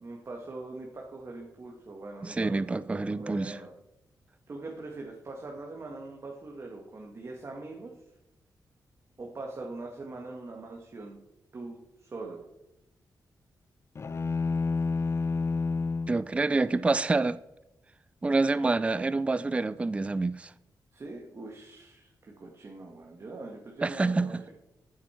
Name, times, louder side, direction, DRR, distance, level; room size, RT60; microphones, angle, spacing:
voice 1, 0.0-2.6 2.9-3.7 4.5-7.9 9.2-11.2 11.5-12.4 20.9-24.5, right 2 dB, 40° right, 1.7 m, -42 dB
voice 2, 2.2-3.6 16.1-17.4 18.2-20.5 23.8-24.3, right 3 dB, 15° right, 0.4 m, -27 dB
sound 1, 14.0-16.2, left 4 dB, 40° left, 0.5 m, -29 dB
13.5 x 8.4 x 4.4 m
wide cardioid pair, 120°, 7 cm